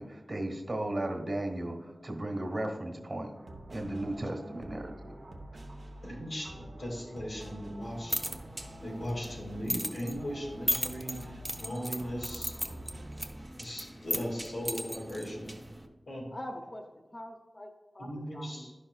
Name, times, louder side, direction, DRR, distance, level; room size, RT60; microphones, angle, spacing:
voice 1, 0.0-1.8 2.0-3.3 3.7-5.1, right 1 dB, 45° right, 3 dB, 1.3 m, -35 dB
sound 1, 3.3-13.5, right 1 dB, 75° right, 0.7 m, -47 dB
voice 2, 6.0-8.2 8.8-12.6 13.6-15.6 16.1-16.3 18.0-18.7, equal, 90° left, -2 dB, 2.2 m, -38 dB
sound 2, 7.8-15.9, right 1 dB, 15° right, 0.7 m, -37 dB
voice 3, 16.3-18.1 18.3-18.7, left 1 dB, 35° left, 3 dB, 0.7 m, -44 dB
11.0 x 5.6 x 2.3 m, 1.2 s
wide cardioid pair, 75°, 0 cm